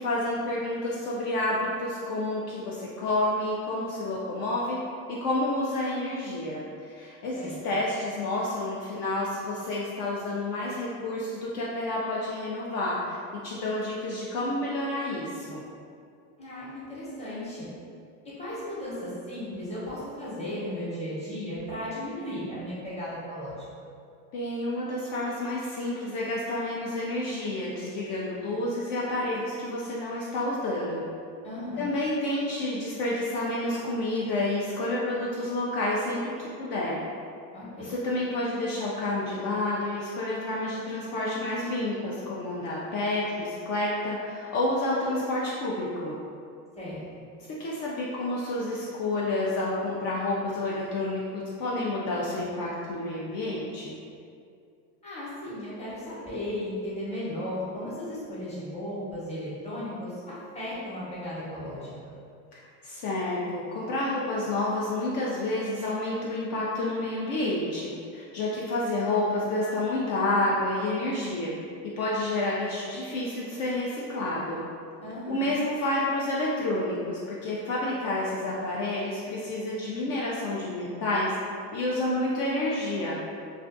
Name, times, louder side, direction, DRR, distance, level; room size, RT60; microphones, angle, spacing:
voice 1, 0.0-4.8 5.1-13.2 13.4-15.6 24.3-31.1 31.8-36.3 36.6-37.0 37.8-46.1 47.6-53.9 62.5-71.5 72.0-74.6 75.3-81.4 81.7-83.2, left 1 dB, 55° left, -5 dB, 0.5 m, -29 dB
voice 2, 16.4-17.7 18.4-23.7 31.4-31.9 37.5-37.9 46.8-47.3 55.0-62.1 75.0-75.5, left 1 dB, 15° left, -9 dB, 0.8 m, -36 dB
2.4 x 2.3 x 2.5 m, 2.4 s
supercardioid pair, 110°, 41 cm